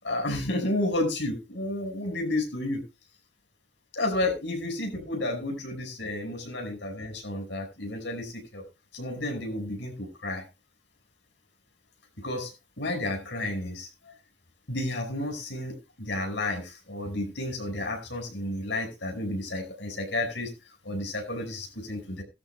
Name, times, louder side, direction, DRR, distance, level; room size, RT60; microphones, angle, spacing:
voice 1, 0.0-2.8 3.9-8.6 8.9-10.4 12.2-12.5 12.8-14.1 14.7-20.5 20.8-22.2, left 1 dB, 80° left, 3 dB, 5.2 m, -31 dB
18.0 x 13.0 x 2.2 m, 0.28 s
head